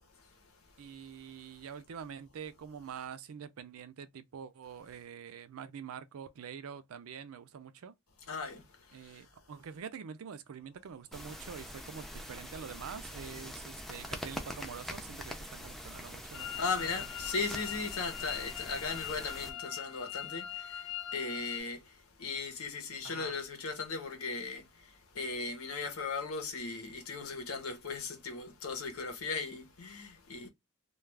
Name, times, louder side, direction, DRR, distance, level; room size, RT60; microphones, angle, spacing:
voice 1, 0.8-7.9 8.9-16.9 23.0-23.4, right 7 dB, 80° right, 0.4 m, -46 dB
voice 2, 8.3-9.3 16.6-30.5, left 4 dB, 90° left, 0.9 m, -38 dB
sound 1, 11.1-19.5, equal, ahead, 0.4 m, -44 dB
sound 2, 16.3-21.6, left 11 dB, 70° left, 0.5 m, -41 dB
2.3 x 2.3 x 3.2 m
head